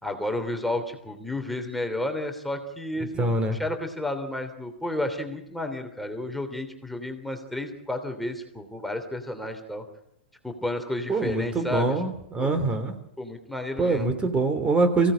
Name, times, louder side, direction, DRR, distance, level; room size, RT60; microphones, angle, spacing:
voice 1, 0.0-3.3 3.6-9.8 10.4-11.9 12.4-12.6 13.2-14.1, left 1 dB, ahead, 5 dB, 3.0 m, -32 dB
voice 2, 3.0-3.6 11.1-13.0 13.8-15.1, right 3 dB, 15° right, 9 dB, 2.9 m, -24 dB
25.0 x 17.0 x 8.7 m, 0.78 s
hypercardioid pair, 115°, 6 cm